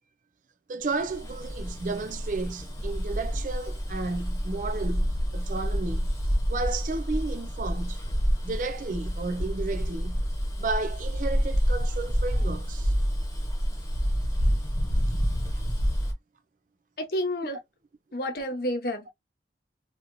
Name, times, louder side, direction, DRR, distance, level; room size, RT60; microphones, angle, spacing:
voice 1, 0.7-6.1 6.5-8.0 8.4-10.2 10.6-12.9, right 3 dB, 45° right, 0.4 m, -33 dB
Bus, 1.0-16.1, equal, 20° left, 1.0 m, -28 dB
voice 2, 17.0-17.6 18.1-19.1, left 1 dB, 60° left, 0.9 m, -30 dB
3.0 x 2.7 x 2.6 m
head